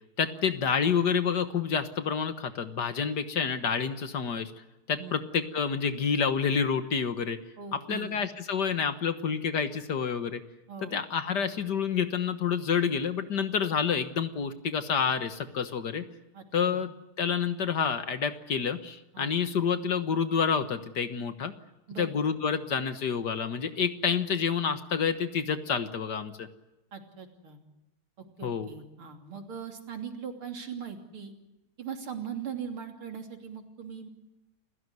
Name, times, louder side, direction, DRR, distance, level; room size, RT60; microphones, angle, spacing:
voice 1, 0.2-4.5 4.9-7.4 7.7-10.4 10.8-16.0 16.5-16.9 17.2-21.5 22.0-26.5 28.4-28.7, left 6 dB, 55° left, 11 dB, 1.8 m, -28 dB
voice 2, 7.6-8.2 10.7-11.0 16.3-16.8 19.1-19.4 21.9-22.1 26.9-27.6 28.4-31.3 31.8-34.1, right 7 dB, 80° right, 5 dB, 3.9 m, -40 dB
29.0 x 16.5 x 9.5 m, 0.98 s
omnidirectional pair, 2.3 m